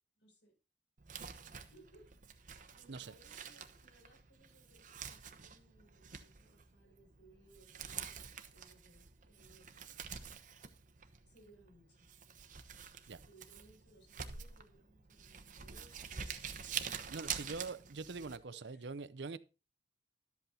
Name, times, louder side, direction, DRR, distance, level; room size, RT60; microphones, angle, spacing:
voice 1, 0.2-0.5 1.4-10.0 11.2-12.1 13.2-17.6 18.1-18.9 19.2-19.4, right 1 dB, 85° left, 6.8 m, -65 dB
Crumpling crinkling, 1.0-18.4, right 7 dB, 45° right, 1.0 m, -47 dB
voice 2, 2.9-3.4 13.1-13.2 17.1-19.4, right 4 dB, 70° right, 0.7 m, -44 dB
12.0 x 8.0 x 4.1 m
head